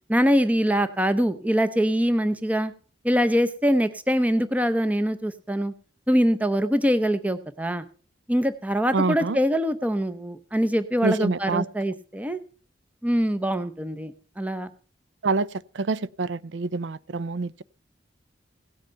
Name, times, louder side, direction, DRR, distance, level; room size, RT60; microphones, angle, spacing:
voice 1, 0.1-2.7 3.0-5.7 6.1-7.8 8.3-12.4 13.0-14.7, equal, 10° right, 0.6 m, -23 dB
voice 2, 8.9-9.4 11.0-11.6 15.2-15.5 15.7-17.6, right 3 dB, 75° right, 0.5 m, -26 dB
17.0 x 8.0 x 5.6 m
head